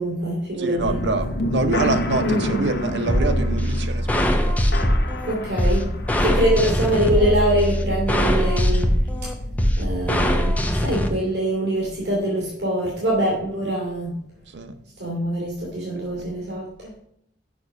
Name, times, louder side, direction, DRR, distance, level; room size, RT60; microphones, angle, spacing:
voice 1, 0.0-0.9 2.2-2.6 5.2-5.9 6.2-8.9 9.8-14.2 15.0-17.0, right 1 dB, 75° right, -4 dB, 2.6 m, -24 dB
voice 2, 0.6-4.6 6.4-6.7 14.5-14.8 15.9-16.2, right 3 dB, 90° right, 8 dB, 0.8 m, -27 dB
sound 1, 0.8-10.3, left 1 dB, 65° left, 0.9 m, -29 dB
sound 2, 3.1-11.1, equal, 10° left, 0.7 m, -21 dB
6.3 x 5.9 x 5.3 m, 0.72 s
head